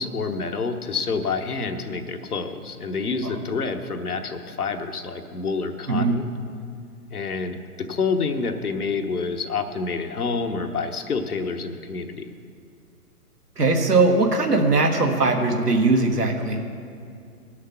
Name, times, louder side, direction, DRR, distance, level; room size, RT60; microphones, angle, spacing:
voice 1, 0.0-6.3 7.1-12.3, left 4 dB, 70° left, 6 dB, 1.1 m, -28 dB
voice 2, 5.9-6.2 13.6-16.6, right 3 dB, 80° right, 3 dB, 1.6 m, -20 dB
17.5 x 6.5 x 5.9 m, 2.4 s
figure-of-eight pair, 125°, 47 cm